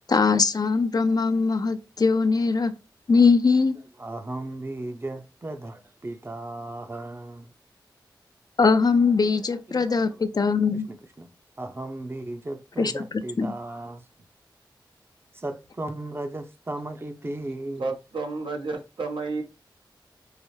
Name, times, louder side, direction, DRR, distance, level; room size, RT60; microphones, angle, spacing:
voice 1, 0.1-2.7 3.1-3.8 8.6-10.9 12.8-13.0 13.4-13.5, left 4 dB, 50° left, 0.5 m, -21 dB
voice 2, 4.0-7.5 9.2-10.2 10.6-11.3 11.6-14.0 15.3-17.9, right 2 dB, 30° right, 0.7 m, -36 dB
voice 3, 17.8-19.4, right 3 dB, 75° right, 0.9 m, -31 dB
4.6 x 2.0 x 3.2 m
cardioid pair, 45°, 8 cm